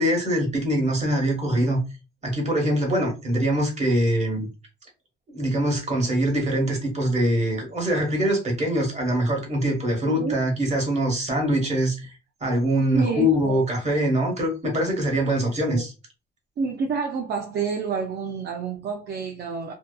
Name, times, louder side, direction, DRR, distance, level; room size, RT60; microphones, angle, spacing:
voice 1, 0.0-1.8 2.2-4.5 5.3-12.1 12.4-15.9, equal, 35° right, 1.4 m, -23 dB
voice 2, 12.9-13.6 15.7-15.8 16.6-19.7, right 5 dB, 55° right, 0.5 m, -28 dB
2.7 x 2.3 x 2.2 m
cardioid pair, 90°, 20 cm